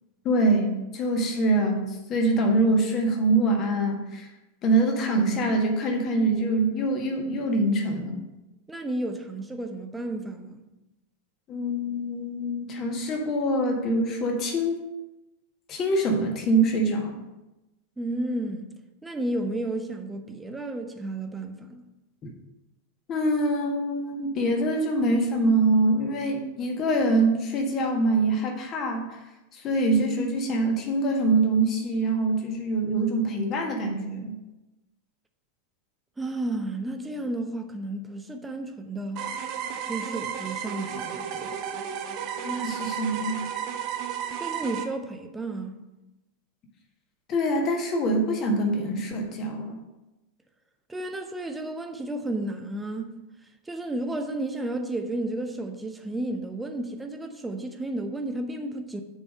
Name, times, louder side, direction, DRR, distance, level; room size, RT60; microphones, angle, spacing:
voice 1, 0.2-4.3 4.6-8.2 11.5-14.8 15.7-17.2 22.2-22.3 23.1-29.2 29.5-34.4 42.4-43.5 47.3-49.8, right 2 dB, 30° left, 1.5 m, -24 dB
voice 2, 8.7-10.6 18.0-21.8 36.2-39.3 39.9-41.6 44.4-45.8 50.9-53.2 53.7-59.0, right 1 dB, 10° right, 0.8 m, -32 dB
sound 1, 39.2-44.8, right 8 dB, 40° right, 0.8 m, -33 dB
7.1 x 4.8 x 6.5 m
figure-of-eight pair, 90°, 0 cm